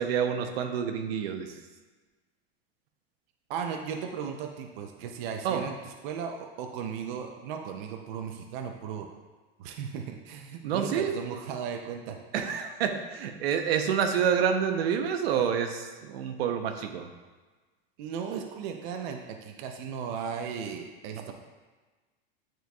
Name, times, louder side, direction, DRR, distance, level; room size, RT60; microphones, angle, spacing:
voice 1, 0.0-1.6 5.4-5.6 10.6-11.4 12.3-17.1 21.2-21.3, right 7 dB, 85° right, 6 dB, 0.8 m, -28 dB
voice 2, 3.5-5.7 6.0-9.1 9.6-12.2 18.0-21.3, right 7 dB, 50° right, 3 dB, 0.6 m, -36 dB
9.2 x 4.5 x 2.3 m, 1.3 s
supercardioid pair, 160°, 30 cm